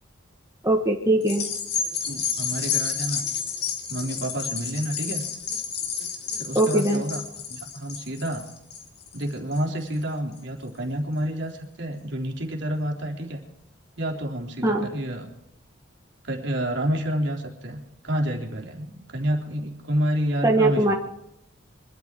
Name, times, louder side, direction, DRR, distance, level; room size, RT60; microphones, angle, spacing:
voice 1, 0.6-1.5 6.6-7.0 14.6-14.9 20.4-20.9, right 1 dB, 15° right, 0 dB, 1.6 m, -21 dB
sound 1, 1.2-9.9 10.4-10.5, left 6 dB, 50° left, 3.0 m, -30 dB
voice 2, 2.1-3.2 3.9-5.2 6.4-7.2 7.5-8.5 9.1-13.4 14.0-15.3 16.2-20.9, right 1 dB, 60° right, 1 dB, 3.6 m, -29 dB
24.0 x 13.0 x 4.6 m, 0.79 s
head